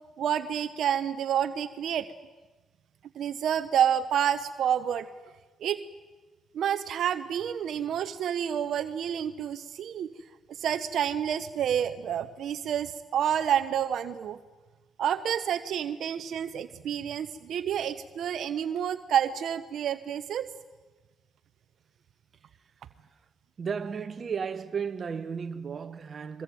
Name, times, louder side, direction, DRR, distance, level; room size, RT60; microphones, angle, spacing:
voice 1, 0.2-2.1 3.1-5.1 5.6-5.8 6.5-10.1 10.5-14.4 15.0-20.5, right 9 dB, 70° right, 0.9 m, -29 dB
voice 2, 23.6-26.4, right 6 dB, 45° right, 1.3 m, -34 dB
22.5 x 22.0 x 9.2 m
cardioid pair, 90°, 0 cm